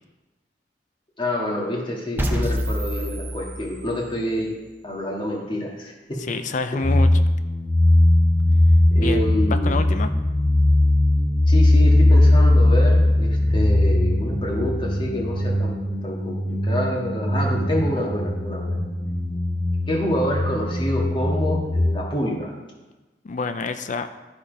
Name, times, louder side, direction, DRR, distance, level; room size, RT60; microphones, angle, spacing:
voice 1, 1.2-4.5 4.8-6.2 8.9-9.8 11.5-18.8 19.9-22.5, equal, 30° left, -1 dB, 1.8 m, -27 dB
sound 1, 2.2-4.2, equal, 10° right, 0.8 m, -27 dB
voice 2, 6.2-7.1 9.0-10.1 23.2-24.1, left 3 dB, 45° left, 9 dB, 0.4 m, -27 dB
sound 2, 6.8-21.9, left 1 dB, 10° left, 1.0 m, -19 dB
12.5 x 4.3 x 5.2 m, 1.1 s
head